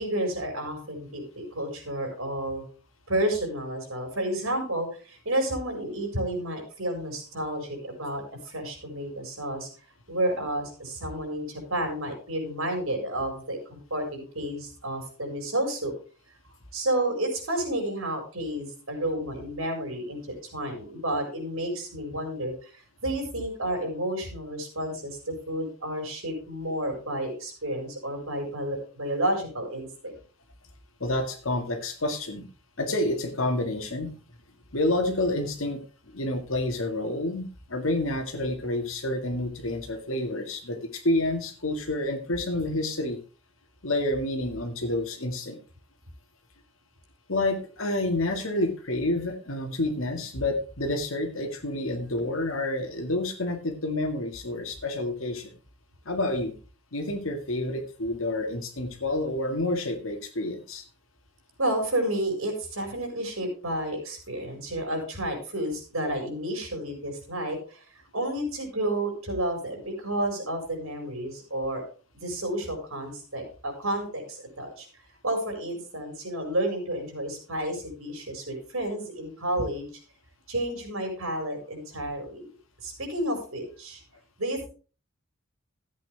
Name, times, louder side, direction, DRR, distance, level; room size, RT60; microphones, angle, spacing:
voice 1, 0.0-2.6 3.1-9.7 10.1-15.9 16.7-22.7 23.0-30.1 61.6-67.8 68.1-71.8 72.2-74.9 75.2-79.9 80.5-82.5 82.8-84.0 84.4-84.7, right 1 dB, 85° right, 3 dB, 4.8 m, -31 dB
voice 2, 31.0-32.4 32.8-34.1 34.7-35.8 36.1-43.2 43.8-45.6 47.3-55.5 56.1-56.5 56.9-60.8, left 1 dB, 70° left, 6 dB, 2.0 m, -29 dB
13.5 x 8.6 x 3.4 m, 0.36 s
head